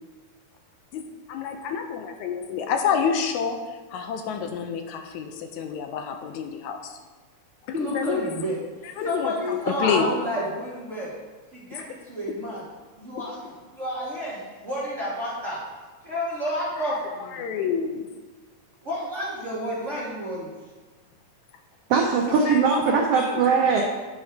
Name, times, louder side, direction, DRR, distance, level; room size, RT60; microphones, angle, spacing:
voice 1, 1.3-7.0 7.9-8.2 9.0-10.1 11.7-11.8 16.9-17.0 17.3-18.1 22.5-23.4, left 6 dB, 80° left, 5 dB, 1.9 m, -28 dB
voice 2, 7.7-11.1 11.5-12.6 13.0-13.4 13.7-15.6 16.0-17.4 18.8-20.5 22.3-22.5, equal, 50° right, -8 dB, 0.8 m, -30 dB
voice 3, 21.9-23.8, right 5 dB, 85° right, 1 dB, 1.3 m, -20 dB
9.8 x 3.4 x 4.9 m, 1.3 s
omnidirectional pair, 3.5 m